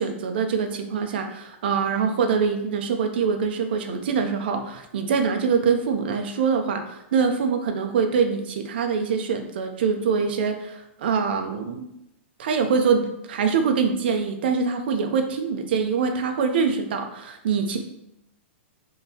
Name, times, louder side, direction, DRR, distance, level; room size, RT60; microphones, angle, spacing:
voice 1, 0.0-11.9 12.4-17.8, right 5 dB, 55° right, 5 dB, 0.4 m, -24 dB
3.6 x 2.7 x 2.7 m, 0.83 s
hypercardioid pair, 175°, 7 cm